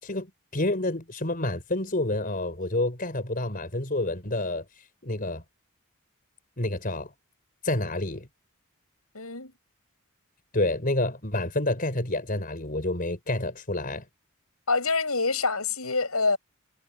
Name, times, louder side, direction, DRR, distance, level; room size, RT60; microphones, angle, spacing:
voice 1, 0.0-4.6 5.0-5.4 6.6-7.1 7.6-8.3 10.5-14.0, left 2 dB, 40° left, 5.0 m, -28 dB
voice 2, 9.1-9.5 14.7-16.4, left 4 dB, 85° left, 7.5 m, -26 dB
head